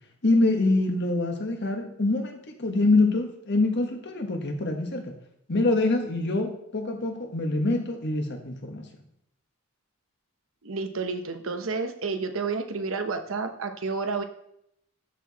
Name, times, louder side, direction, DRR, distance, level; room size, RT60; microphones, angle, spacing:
voice 1, 0.2-5.1 5.5-8.8, left 2 dB, 55° left, 3 dB, 1.5 m, -25 dB
voice 2, 10.6-14.2, right 4 dB, 70° right, 7 dB, 1.0 m, -30 dB
12.5 x 4.7 x 4.1 m, 0.74 s
head